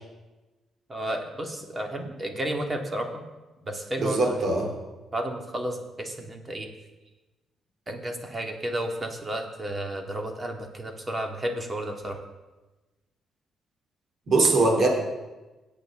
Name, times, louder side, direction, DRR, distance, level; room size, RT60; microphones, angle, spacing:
voice 1, 0.9-3.1 3.6-4.5 5.1-6.7 7.9-12.2, right 1 dB, 25° right, 3 dB, 2.1 m, -32 dB
voice 2, 4.0-4.7 14.3-14.9, right 3 dB, 55° right, 0 dB, 3.2 m, -21 dB
21.5 x 8.3 x 3.8 m, 1.1 s
cardioid pair, 90°, 0 cm